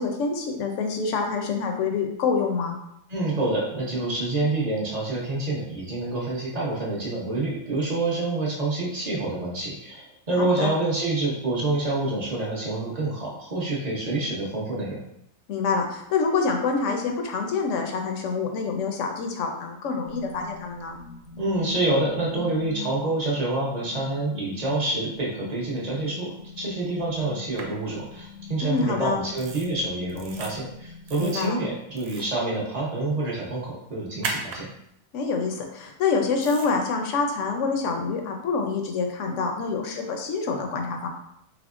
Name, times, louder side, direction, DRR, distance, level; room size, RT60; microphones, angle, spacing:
voice 1, 0.0-2.8 10.4-10.7 15.5-21.0 28.6-29.2 31.2-31.6 35.1-41.1, left 4 dB, 70° left, 3 dB, 0.9 m, -26 dB
voice 2, 3.1-15.0 21.4-34.7, right 2 dB, 35° right, -3 dB, 0.7 m, -27 dB
sound 1, 20.0-32.0, left 4 dB, 90° left, 1.3 m, -43 dB
sound 2, 27.6-27.7 29.4-29.7 30.1-30.5 31.1-31.5 31.9-32.3 34.2-34.6 36.4-36.7, right 4 dB, 85° right, 1.0 m, -35 dB
3.5 x 3.2 x 2.4 m, 0.77 s
omnidirectional pair, 1.4 m